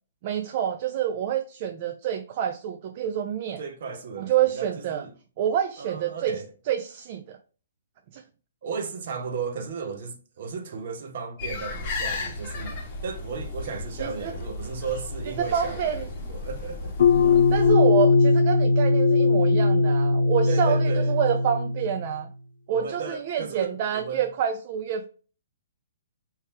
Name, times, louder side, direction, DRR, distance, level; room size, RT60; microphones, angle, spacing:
voice 1, 0.2-3.6 4.2-5.0 5.4-6.4 6.7-7.4 8.1-8.2 14.0-14.3 15.4-16.1 17.3-22.3 22.7-25.1, right 9 dB, 35° right, 0.3 m, -27 dB
voice 2, 3.6-5.1 5.8-6.5 8.6-17.0 20.5-21.1 22.7-24.3, right 5 dB, 50° right, 0.8 m, -35 dB
sound 1, 11.4-17.7, left 3 dB, 25° left, 1.0 m, -35 dB
sound 2, 17.0-22.2, left 4 dB, 60° left, 0.4 m, -20 dB
3.6 x 2.8 x 4.4 m
hypercardioid pair, 170°, 0 cm